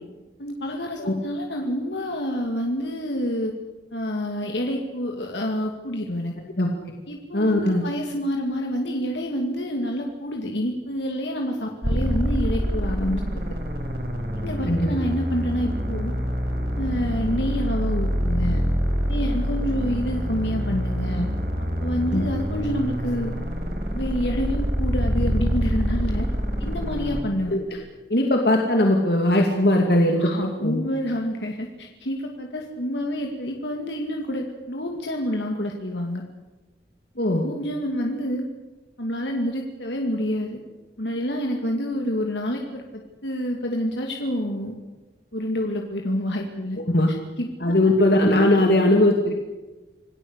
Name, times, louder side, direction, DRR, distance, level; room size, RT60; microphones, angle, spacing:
voice 1, 0.4-3.5 3.9-6.3 7.1-13.5 14.4-16.1 16.8-18.6 19.1-21.3 21.8-23.3 23.9-26.3 26.6-27.6 30.2-36.2 37.4-38.5 39.0-40.6 41.0-44.8 45.3-46.8 47.1-47.8, equal, 85° left, 2 dB, 2.5 m, -28 dB
voice 2, 7.3-7.8 14.6-14.9 22.1-22.3 27.5-27.6 28.1-30.8 37.2-37.5 46.9-47.1 47.6-49.3, left 1 dB, 65° left, 1 dB, 2.7 m, -19 dB
sound 1, 11.8-27.2, equal, 55° right, 4.8 m, -26 dB
27.5 x 18.0 x 8.3 m, 1.2 s
head